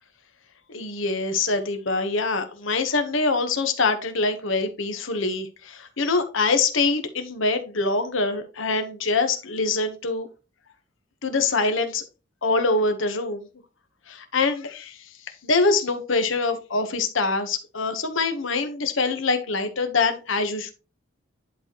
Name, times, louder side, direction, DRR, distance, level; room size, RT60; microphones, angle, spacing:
voice 1, 0.7-10.3 11.2-12.0 12.4-13.5 14.1-15.0 15.4-20.7, left 3 dB, 80° left, 7 dB, 1.2 m, -24 dB
10.5 x 4.2 x 3.0 m, 0.31 s
head